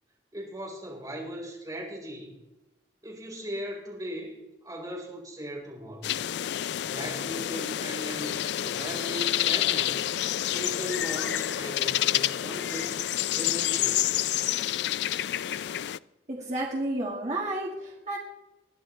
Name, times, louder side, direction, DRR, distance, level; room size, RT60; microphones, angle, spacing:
voice 1, 0.3-2.3 3.0-4.4 4.6-6.1 6.9-10.0 10.4-13.0 13.3-14.3, equal, 20° right, -3 dB, 4.1 m, -38 dB
sound 1, 6.0-16.0, left 12 dB, 70° left, 0.3 m, -28 dB
voice 2, 16.3-18.2, right 1 dB, 40° right, -3 dB, 1.6 m, -31 dB
21.0 x 11.0 x 3.2 m, 0.96 s
head